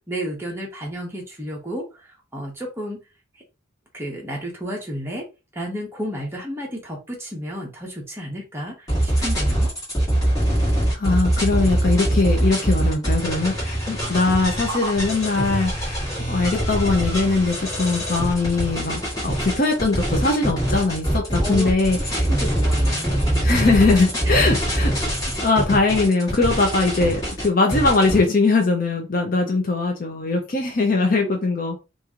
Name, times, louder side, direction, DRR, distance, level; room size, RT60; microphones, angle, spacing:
voice 1, 0.0-1.9 2.3-3.0 3.9-5.3 5.5-9.7 21.4-21.7 22.3-23.5 24.2-24.5 31.1-31.3, equal, 10° right, -1 dB, 1.0 m, -31 dB
sound 1, 8.9-28.2, right 1 dB, 20° left, 1.6 m, -23 dB
voice 2, 10.9-22.3 23.4-24.9 25.4-31.8, left 3 dB, 45° left, 2 dB, 0.6 m, -21 dB
2.9 x 2.6 x 3.7 m, 0.29 s
head